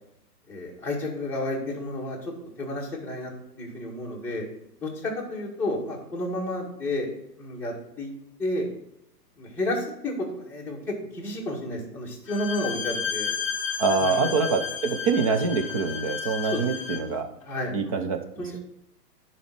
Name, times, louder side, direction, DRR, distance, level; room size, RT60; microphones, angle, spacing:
voice 1, 0.5-2.3 2.6-3.3 3.6-4.5 4.8-7.1 7.4-8.1 8.4-8.7 9.4-13.3 14.0-14.4 16.4-16.8 17.4-17.7 18.4-18.6, left 1 dB, 5° left, -6 dB, 2.1 m, -31 dB
Bowed string instrument, 12.3-17.1, left 7 dB, 25° left, 0.4 m, -32 dB
voice 2, 13.8-17.3 17.7-18.2, right 4 dB, 20° right, 5 dB, 0.6 m, -25 dB
10.5 x 4.2 x 5.9 m, 0.85 s
hypercardioid pair, 140°, 48 cm